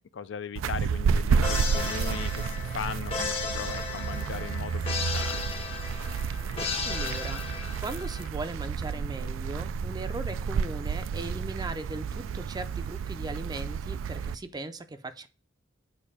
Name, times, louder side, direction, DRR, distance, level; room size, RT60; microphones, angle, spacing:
voice 1, 0.0-5.5, left 7 dB, 65° left, 0.4 m, -38 dB
sound 1, 0.6-14.4, right 6 dB, 85° right, 0.3 m, -31 dB
sound 2, 1.4-8.3, left 5 dB, 30° left, 0.8 m, -35 dB
voice 2, 6.8-7.4 7.8-15.3, right 2 dB, 20° right, 0.4 m, -38 dB
6.5 x 2.6 x 5.5 m
head